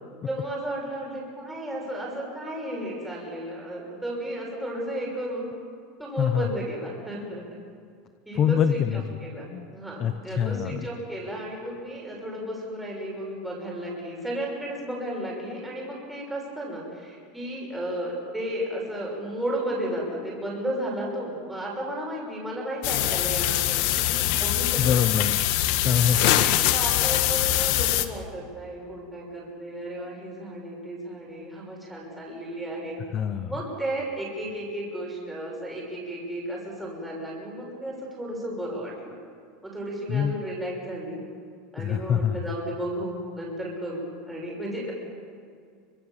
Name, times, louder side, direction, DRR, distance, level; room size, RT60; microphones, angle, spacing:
voice 1, 0.3-5.5 6.0-7.4 8.2-25.1 26.5-33.0 33.5-39.1 39.6-41.2 41.7-44.9, right 1 dB, 5° right, -4 dB, 6.2 m, -33 dB
voice 2, 6.2-6.5 8.3-9.2 9.5-9.7 10.0-10.8 24.8-25.4 25.8-26.6 33.1-33.5 40.1-40.4 41.8-42.4, left 8 dB, 25° left, 10 dB, 0.9 m, -25 dB
sound 1, 22.8-28.0, left 14 dB, 55° left, 1.6 m, -23 dB
29.0 x 25.0 x 7.4 m, 2.2 s
supercardioid pair, 165°, 0 cm